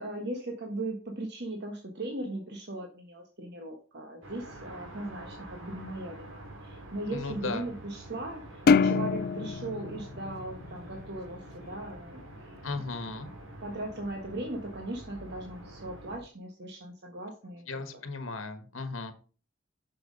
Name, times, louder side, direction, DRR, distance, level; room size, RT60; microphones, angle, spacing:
voice 1, 0.0-12.6 13.6-17.8, right 2 dB, 55° right, 1 dB, 1.4 m, -38 dB
sound 1, 4.2-16.2, right 1 dB, 80° right, 2.9 m, -47 dB
voice 2, 7.1-7.7 12.6-13.3 17.7-19.1, left 3 dB, 85° left, 9 dB, 1.3 m, -36 dB
sound 2, 8.7-11.2, left 5 dB, 50° left, 0.4 m, -26 dB
6.8 x 6.3 x 5.2 m, 0.38 s
head